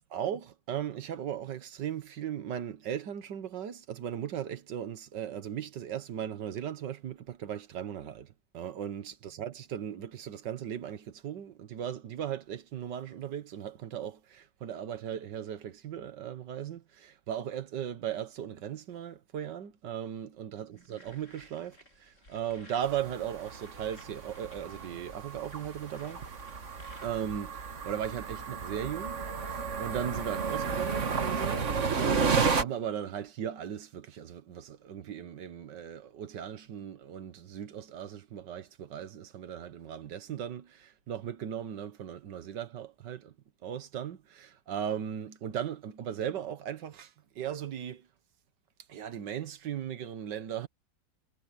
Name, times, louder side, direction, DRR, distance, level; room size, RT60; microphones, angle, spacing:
voice 1, 0.0-26.2 27.0-43.4 43.6-48.1 48.9-50.7, right 9 dB, 85° right, 1.8 m, -37 dB
sound 1, 20.8-27.5, left 1 dB, 45° left, 7.1 m, -58 dB
sound 2, 22.8-32.6, right 5 dB, 45° right, 1.7 m, -32 dB
omnidirectional pair, 1.9 m